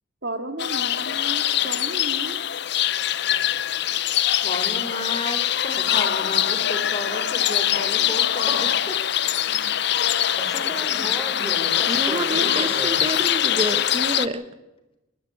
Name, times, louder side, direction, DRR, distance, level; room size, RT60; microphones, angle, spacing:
voice 1, 0.2-2.4 12.3-12.7, right 2 dB, 55° right, 8 dB, 2.3 m, -33 dB
sound 1, 0.6-14.3, left 11 dB, 55° left, 0.7 m, -23 dB
voice 2, 4.4-8.7, left 1 dB, 25° left, 6 dB, 3.7 m, -32 dB
voice 3, 10.3-13.0, equal, ahead, 3 dB, 4.5 m, -35 dB
voice 4, 11.9-14.4, right 1 dB, 25° right, 11 dB, 1.4 m, -28 dB
29.0 x 12.0 x 8.8 m, 0.96 s
head